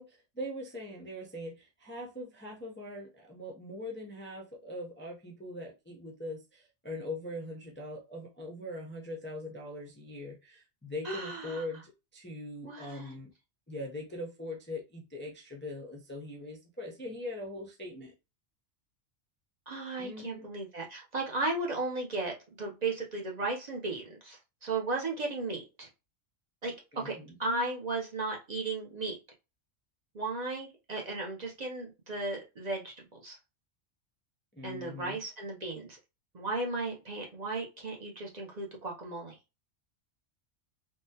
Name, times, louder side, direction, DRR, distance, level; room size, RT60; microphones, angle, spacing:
voice 1, 0.0-13.3 13.7-18.1 20.0-20.5 26.9-27.4 34.5-35.2, left 1 dB, 15° left, 0.4 m, -41 dB
voice 2, 11.0-11.6 12.6-13.2 19.7-25.9 26.6-26.7 27.0-29.2 30.1-33.4 34.6-36.0 36.3-39.3, right 2 dB, 45° right, 0.7 m, -35 dB
3.6 x 2.1 x 2.7 m
omnidirectional pair, 1.2 m